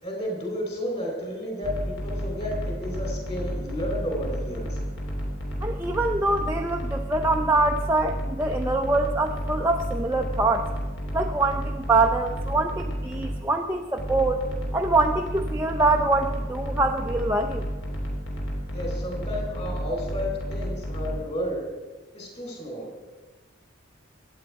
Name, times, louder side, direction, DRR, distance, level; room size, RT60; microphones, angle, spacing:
voice 1, 0.0-4.8 18.7-21.7 22.1-23.0, equal, 30° left, 0 dB, 4.1 m, -32 dB
sound 1, 1.6-13.4 14.0-21.2, equal, 60° left, 3.2 m, -31 dB
voice 2, 5.6-10.7 11.1-14.5 14.7-17.7, right 2 dB, 10° right, 2 dB, 0.6 m, -24 dB
24.0 x 8.8 x 4.7 m, 1.3 s
head